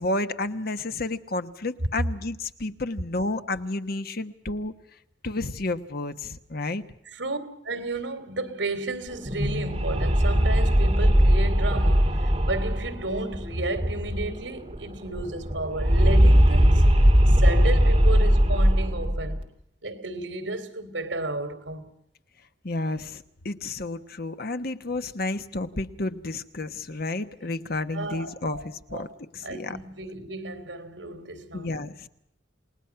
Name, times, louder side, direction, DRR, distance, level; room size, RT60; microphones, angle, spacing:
voice 1, 0.0-4.7 5.2-6.8 22.6-29.1 29.3-29.8 31.5-32.1, left 2 dB, 55° left, 1.2 m, -31 dB
voice 2, 7.1-7.4 7.6-16.9 17.3-19.4 19.8-21.9 27.9-28.6 28.9-29.0 29.4-31.7, right 2 dB, 80° right, 2.8 m, -33 dB
sound 1, 9.1-14.4 14.7-14.8 15.1-19.4, equal, 30° right, 2.8 m, -20 dB
29.0 x 19.5 x 5.8 m
head